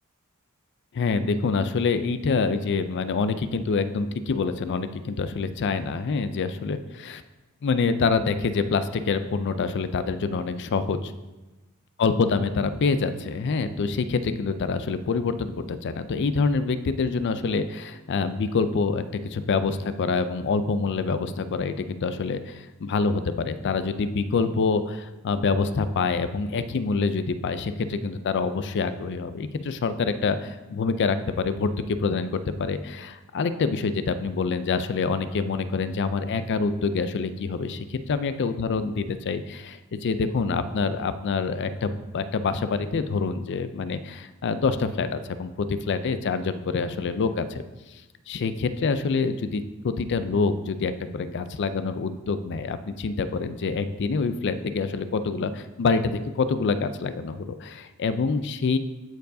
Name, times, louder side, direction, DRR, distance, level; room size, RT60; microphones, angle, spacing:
voice 1, 0.9-7.2 7.6-11.1 12.0-47.6 48.3-58.8, left 4 dB, 55° left, 11 dB, 0.4 m, -26 dB
12.5 x 4.6 x 2.7 m, 1.1 s
head